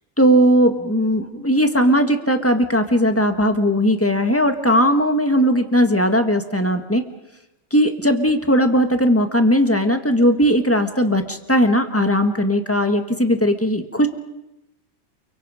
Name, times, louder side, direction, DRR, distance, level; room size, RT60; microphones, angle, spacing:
voice 1, 0.2-7.0 7.7-14.1, equal, 10° left, 7 dB, 1.6 m, -18 dB
29.0 x 24.0 x 5.0 m, 0.95 s
omnidirectional pair, 1.3 m